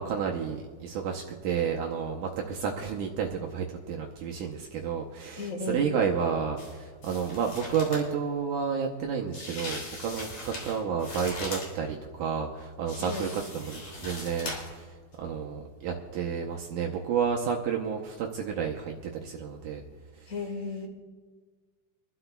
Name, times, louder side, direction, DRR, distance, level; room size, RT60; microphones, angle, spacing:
voice 1, 0.0-14.9 15.2-19.8 20.2-20.3, right 6 dB, 75° right, 0 dB, 1.9 m, -31 dB
voice 2, 5.4-5.9 13.0-13.3 20.3-20.9, left 3 dB, 70° left, 2 dB, 0.7 m, -34 dB
sound 1, 6.6-6.7 7.0-8.1 9.3-11.7 12.9-14.8 15.1-15.2, left 2 dB, 50° left, 4.4 m, -39 dB
26.5 x 12.0 x 2.3 m, 1.5 s
omnidirectional pair, 4.3 m